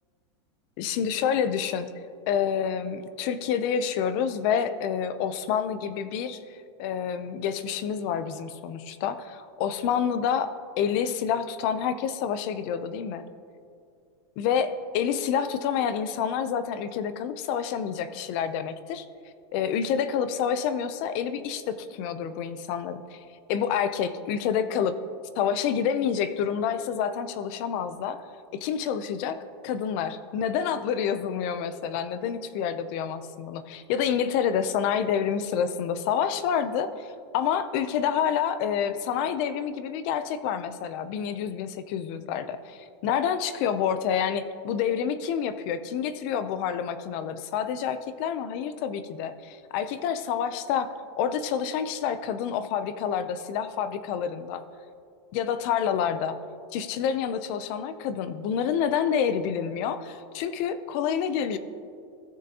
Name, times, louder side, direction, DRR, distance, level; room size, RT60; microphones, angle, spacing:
voice 1, 0.8-1.9 2.3-13.3 14.4-19.0 19.5-23.2 23.5-25.0 25.4-28.2 28.5-29.4 29.6-54.6 55.3-56.4 56.7-61.6, left 8 dB, 30° left, 12 dB, 0.4 m, -28 dB
17.5 x 6.4 x 2.8 m, 2.4 s
supercardioid pair, 175°, 14 cm